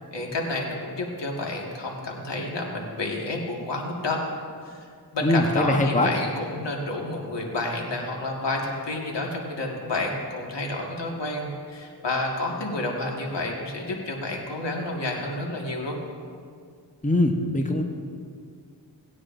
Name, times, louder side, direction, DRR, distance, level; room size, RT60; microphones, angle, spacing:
voice 1, 0.1-4.2 4.6-16.0, left 2 dB, 75° left, 0 dB, 1.9 m, -30 dB
voice 2, 5.2-6.1 17.0-17.8, left 1 dB, 20° left, 3 dB, 1.1 m, -22 dB
18.5 x 9.5 x 2.6 m, 2.1 s
cardioid pair, 60°, 43 cm